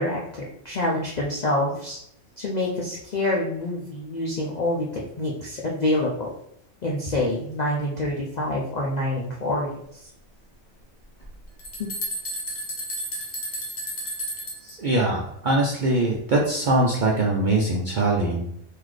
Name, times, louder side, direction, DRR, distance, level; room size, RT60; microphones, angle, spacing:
voice 1, 0.0-2.0 2.4-6.3 6.8-9.7 11.8-11.9 14.6-14.8, left 1 dB, 60° left, -3 dB, 0.4 m, -26 dB
sound 1, 11.2-14.7, equal, 40° left, 0.8 m, -32 dB
voice 2, 14.8-18.4, right 2 dB, 60° right, -2 dB, 0.5 m, -22 dB
3.9 x 2.7 x 3.1 m, 0.73 s
omnidirectional pair, 1.4 m